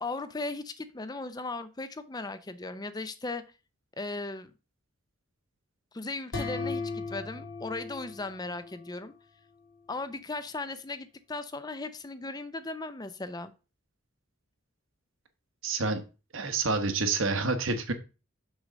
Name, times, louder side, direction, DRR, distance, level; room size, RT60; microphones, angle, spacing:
voice 1, 0.0-3.4 4.0-4.5 5.9-9.1 9.9-13.5, left 3 dB, 20° left, 0.5 m, -37 dB
sound 1, 6.3-9.1, left 3 dB, 65° left, 2.4 m, -37 dB
voice 2, 15.6-16.0 16.3-17.9, right 3 dB, 80° right, 1.2 m, -28 dB
6.3 x 3.9 x 6.2 m
head